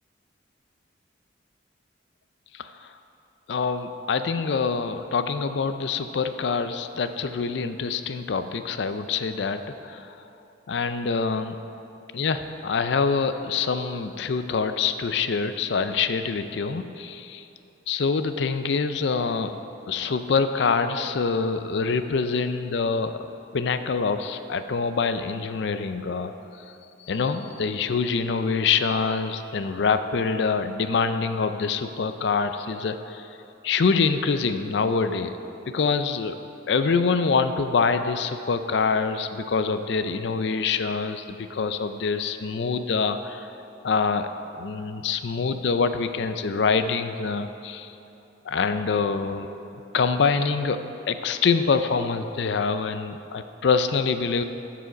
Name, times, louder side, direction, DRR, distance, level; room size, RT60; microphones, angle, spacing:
voice 1, 2.5-2.9 3.5-10.2 10.7-11.6 12.1-17.4 17.9-19.5 19.9-23.1 23.5-26.3 27.1-33.3 33.6-35.4 35.7-36.3 36.7-43.5 43.8-44.3 44.5-47.9 48.5-49.5 49.9-50.8 51.1-54.4, left 5 dB, 60° left, 10 dB, 0.4 m, -25 dB
12.5 x 4.9 x 5.0 m, 2.8 s
head